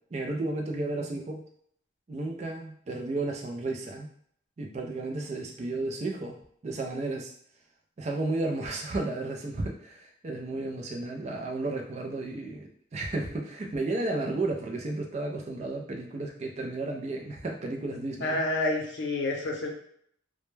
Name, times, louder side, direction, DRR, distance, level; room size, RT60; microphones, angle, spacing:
voice 1, 0.1-1.4 2.1-4.1 4.6-6.4 6.6-7.3 8.0-18.4, right 2 dB, 35° right, 1 dB, 0.3 m, -33 dB
voice 2, 18.2-19.7, left 2 dB, 70° left, 0 dB, 0.6 m, -28 dB
2.1 x 2.1 x 3.1 m, 0.65 s
head